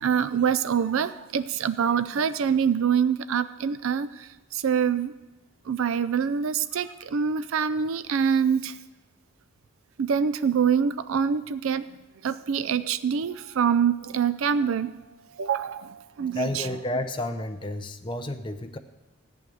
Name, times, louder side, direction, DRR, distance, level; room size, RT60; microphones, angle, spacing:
voice 1, 0.0-4.1 4.6-5.1 5.7-8.7 10.1-11.8 12.2-14.9 15.4-15.8 16.2-16.7, right 7 dB, 65° right, 13 dB, 0.4 m, -25 dB
voice 2, 16.3-18.8, left 1 dB, 20° left, 7 dB, 0.7 m, -31 dB
14.0 x 6.4 x 9.3 m, 1.1 s
head